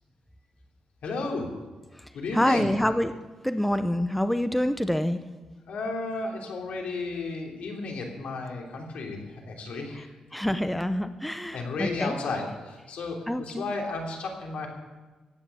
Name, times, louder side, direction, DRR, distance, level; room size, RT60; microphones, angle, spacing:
voice 1, 1.0-1.5 2.1-2.7 5.7-10.1 11.5-14.7, left 3 dB, 85° left, 0 dB, 3.2 m, -33 dB
voice 2, 2.3-3.1 3.4-5.2 10.3-12.1 13.3-13.7, left 1 dB, 5° left, 10 dB, 0.6 m, -26 dB
16.0 x 9.7 x 7.0 m, 1.2 s
wide cardioid pair, 125°, 2 cm